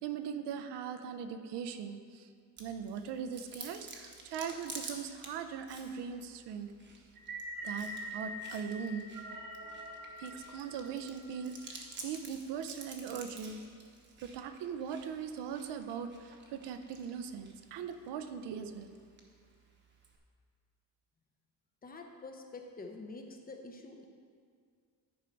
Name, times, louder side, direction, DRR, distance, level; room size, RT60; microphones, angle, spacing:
voice 1, 0.0-2.3 2.6-6.7 7.6-9.1 10.2-13.6 14.2-18.9, right 7 dB, 80° right, 8 dB, 0.7 m, -40 dB
Chewing mastication, 2.6-20.2, right 3 dB, 25° right, 0.9 m, -51 dB
sound 1, 7.2-11.5, right 1 dB, 50° right, 1.1 m, -44 dB
voice 2, 21.8-24.1, left 3 dB, 20° left, 3 dB, 0.6 m, -47 dB
10.5 x 4.5 x 5.2 m, 2.2 s
cardioid pair, 165°, 40 cm